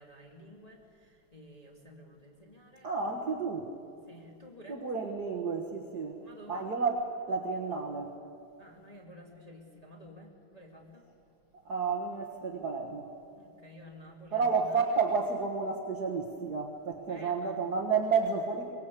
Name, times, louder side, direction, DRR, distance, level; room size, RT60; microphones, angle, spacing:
voice 1, 0.0-2.9 4.1-4.8 6.2-6.7 8.6-11.0 13.3-15.0 17.1-17.7, equal, 15° left, -1 dB, 1.5 m, -52 dB
voice 2, 2.8-3.7 4.7-6.2 6.5-7.0 7.3-8.2 11.6-13.1 14.3-18.7, right 5 dB, 70° right, 0 dB, 0.9 m, -31 dB
23.5 x 20.0 x 8.5 m, 2.6 s
omnidirectional pair, 4.3 m